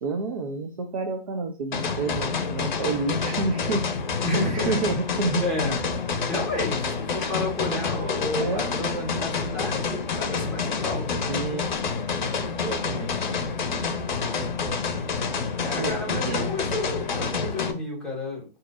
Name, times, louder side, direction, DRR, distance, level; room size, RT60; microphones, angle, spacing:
voice 1, 0.0-3.9 4.5-5.5 8.4-8.8 11.3-11.7 12.6-13.3 15.6-16.5, right 3 dB, 35° right, 3 dB, 0.6 m, -29 dB
sound 1, 1.7-17.7, left 5 dB, 50° left, 0.7 m, -28 dB
voice 2, 4.2-4.8 5.4-5.8 6.3-11.2 14.2-14.5 15.6-18.4, left 2 dB, ahead, -4 dB, 1.4 m, -31 dB
5.8 x 2.6 x 2.5 m, 0.33 s
figure-of-eight pair, 135°, 29 cm